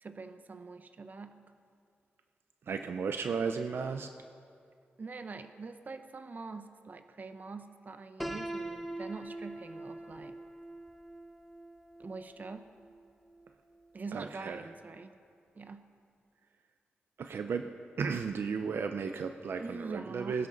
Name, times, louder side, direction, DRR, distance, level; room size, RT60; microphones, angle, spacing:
voice 1, 0.0-1.4 5.0-10.4 12.0-12.7 13.9-15.1 15.5-15.9 19.6-20.5, right 4 dB, 45° right, 9 dB, 0.8 m, -44 dB
voice 2, 2.7-4.1 14.1-14.6 17.2-17.7 18.0-20.5, right 5 dB, 75° right, 7 dB, 0.6 m, -34 dB
Piano, 8.2-14.1, right 1 dB, 5° left, 0.8 m, -43 dB
21.0 x 11.0 x 4.0 m, 2.3 s
wide cardioid pair, 90°, 4 cm